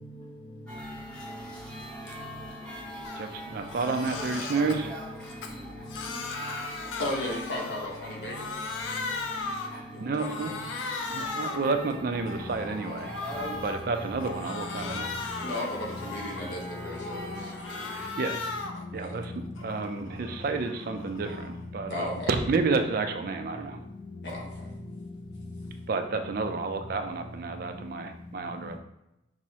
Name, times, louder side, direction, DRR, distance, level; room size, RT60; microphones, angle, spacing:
voice 1, 0.7-1.4 1.7-1.8 2.8-3.1 3.5-3.6 3.8-4.1 4.9-5.3 5.7-6.1 7.0-8.2 8.8-9.1 9.3-9.4 14.6-15.6 16.7-16.8 17.1-17.9 18.7-19.5 21.4-21.5 21.9-22.3 24.2-24.5 25.0-25.8, left 2 dB, 25° left, 2 dB, 0.4 m, -42 dB
sound 1, 0.7-18.1, equal, 5° left, 0.8 m, -43 dB
Crying sobbing, 3.0-3.3 3.6-4.8 5.2-8.0 8.3-9.8 10.2-11.7 12.1-13.8 14.2-16.5 16.9-18.9 19.2-21.6, left 4 dB, 85° left, 0.4 m, -37 dB
voice 2, 3.1-5.0 9.7-10.5 11.1-15.1 17.9-18.4 18.9-19.3 19.6-23.8 25.9-28.8, right 4 dB, 50° right, 6 dB, 0.3 m, -30 dB
voice 3, 7.0-8.5 9.9-10.5 11.1-11.7 15.4-17.3 19.0-19.2 21.9-22.3 24.2-24.7, left 1 dB, 65° left, -1 dB, 0.8 m, -35 dB
6.0 x 2.0 x 2.7 m, 0.88 s
head